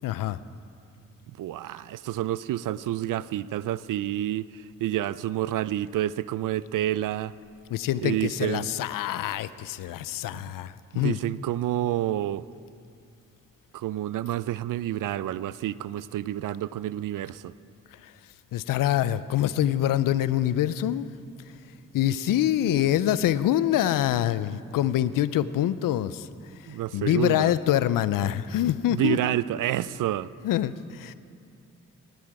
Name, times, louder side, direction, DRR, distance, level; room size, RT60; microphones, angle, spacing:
voice 1, 0.0-0.4 7.7-11.2 18.0-18.1 18.5-21.1 21.9-26.3 26.9-29.2 30.4-31.1, left 12 dB, 85° left, 16 dB, 0.5 m, -25 dB
voice 2, 1.4-7.3 8.0-8.7 10.3-10.5 10.9-12.4 13.7-17.5 26.7-27.5 28.9-30.3, right 13 dB, 75° right, 18 dB, 0.5 m, -29 dB
18.5 x 9.3 x 4.8 m, 2.4 s
supercardioid pair, 45°, 32 cm